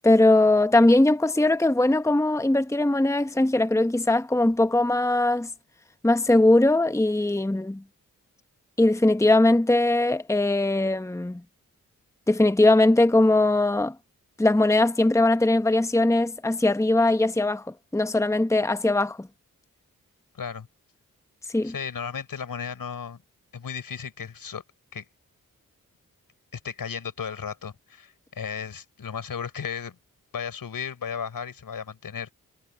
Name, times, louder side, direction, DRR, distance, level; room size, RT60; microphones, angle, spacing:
voice 1, 0.0-5.5 6.0-7.8 8.8-11.4 12.3-13.9 14.4-19.3 21.5-21.7, left 2 dB, 10° left, 1.1 m, -20 dB
voice 2, 20.3-20.7 21.6-23.2 23.5-24.6 24.9-25.1 26.5-30.0 30.3-32.3, left 6 dB, 80° left, 5.3 m, -35 dB
cardioid pair, 45°, 34 cm